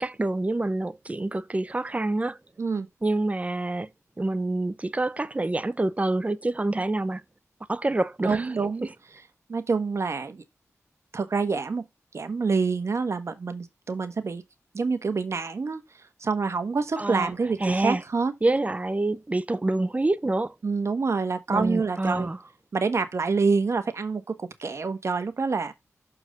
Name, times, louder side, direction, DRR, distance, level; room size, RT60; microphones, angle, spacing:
voice 1, 0.0-2.4 3.0-3.9 4.2-7.2 7.7-8.4 17.0-17.3 17.6-18.0 18.4-20.5 21.5-22.4, right 2 dB, 25° right, 0.6 m, -26 dB
voice 2, 8.2-8.9 9.5-10.4 11.1-11.8 12.1-14.4 14.7-18.3 20.6-22.3 22.7-25.7, right 4 dB, 55° right, 1.2 m, -27 dB
6.6 x 4.6 x 4.9 m
wide cardioid pair, 75°, 6 cm